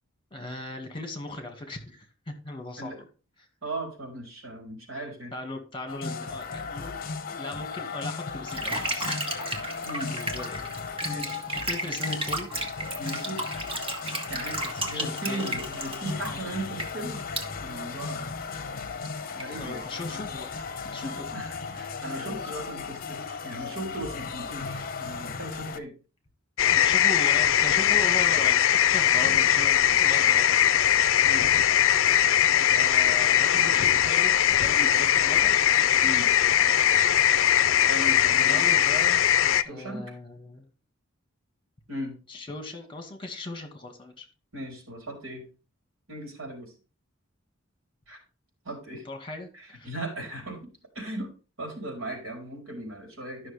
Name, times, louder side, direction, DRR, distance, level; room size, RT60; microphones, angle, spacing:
voice 1, 0.3-3.1 5.3-6.9 7.3-9.2 10.1-10.6 11.5-12.5 14.7-15.4 19.6-20.5 20.8-21.3 26.7-29.7 30.0-30.6 32.4-35.6 38.3-39.2 39.6-40.6 42.3-44.3 49.0-49.9, left 2 dB, 25° left, 4 dB, 2.1 m, -38 dB
voice 2, 3.6-5.3 9.8-10.1 11.0-11.4 13.0-13.4 14.3-17.2 17.6-18.3 19.3-19.8 21.0-25.9 29.1-29.3 31.2-31.6 33.5-33.7 34.7-34.9 36.0-36.3 37.9-38.6 39.6-40.0 41.9-42.1 44.5-45.4 46.1-46.7 48.1-48.2 48.6-49.1 49.5-50.6 50.9-51.3 51.6-53.5, right 1 dB, 80° right, 2 dB, 4.0 m, -37 dB
sound 1, 5.9-25.8, left 5 dB, 45° left, 0.8 m, -36 dB
sound 2, 8.5-17.4 18.1-18.2 18.4-18.6 19.0-19.1 19.4-19.9, right 1 dB, 30° right, 1.6 m, -34 dB
sound 3, 26.6-39.6, left 10 dB, 70° left, 0.4 m, -21 dB
12.5 x 6.3 x 3.5 m, 0.33 s
head